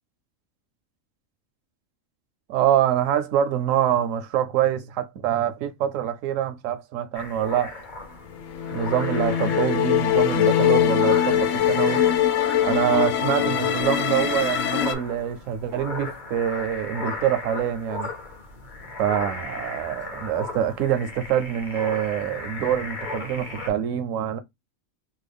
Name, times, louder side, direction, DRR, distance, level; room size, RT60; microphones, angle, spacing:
voice 1, 2.5-7.8 8.7-12.0 12.6-18.1 19.0-24.4, right 10 dB, 75° right, 0.9 m, -25 dB
sound 1, 7.1-23.7, left 3 dB, 45° left, 0.8 m, -36 dB
sound 2, 8.4-14.9, left 10 dB, 70° left, 0.9 m, -22 dB
3.1 x 2.2 x 3.3 m
omnidirectional pair, 1.4 m